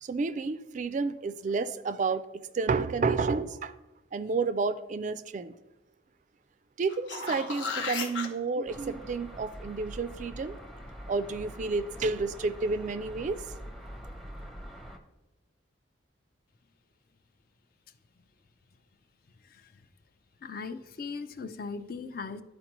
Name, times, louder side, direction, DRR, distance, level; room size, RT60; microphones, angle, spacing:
voice 1, 0.0-3.7 4.1-5.5 6.8-10.6 11.1-13.4, right 4 dB, 40° right, 13 dB, 0.3 m, -30 dB
sound 1, 6.8-8.3 13.1-13.2, left 5 dB, 75° left, 0.9 m, -34 dB
sound 2, 8.7-15.0, equal, ahead, 0.6 m, -44 dB
voice 2, 20.4-22.4, left 4 dB, 50° left, 10 dB, 0.4 m, -38 dB
11.5 x 4.3 x 3.0 m, 1.1 s
head